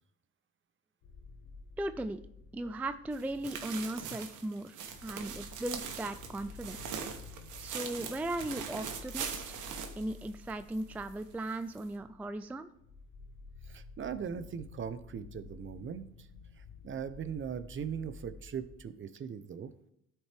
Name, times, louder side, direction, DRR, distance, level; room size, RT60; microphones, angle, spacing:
sound 1, 1.0-18.8, left 4 dB, 90° left, 0.9 m, -52 dB
voice 1, 1.8-2.2 2.5-4.8 5.0-7.0 7.6-9.6 10.0-12.7, right 1 dB, 5° right, 10 dB, 0.3 m, -37 dB
sound 2, 3.1-10.8 11.1-11.2 11.7-11.8, right 7 dB, 85° right, 1.0 m, -41 dB
voice 2, 13.6-16.3 16.6-19.7, right 7 dB, 40° right, 11 dB, 0.6 m, -40 dB
12.5 x 4.5 x 3.4 m, 0.76 s
cardioid pair, 90°, 30 cm